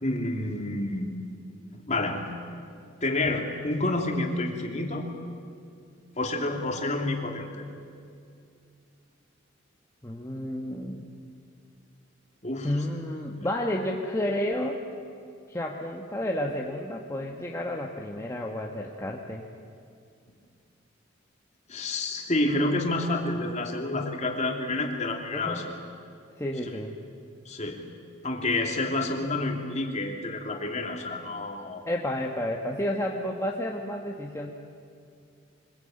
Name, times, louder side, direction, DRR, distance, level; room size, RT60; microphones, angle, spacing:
voice 1, 0.0-1.1 1.7-2.3 3.0-5.1 6.2-7.7 12.4-12.7 13.4-13.5 21.7-25.7 27.4-27.8 28.2-31.8, left 2 dB, 35° left, 2 dB, 2.9 m, -29 dB
voice 2, 10.0-11.1 12.6-14.8 15.5-19.4 25.3-25.6 26.4-26.9 31.9-34.5, left 1 dB, 15° left, 0 dB, 1.3 m, -31 dB
25.5 x 21.0 x 9.0 m, 2.4 s
head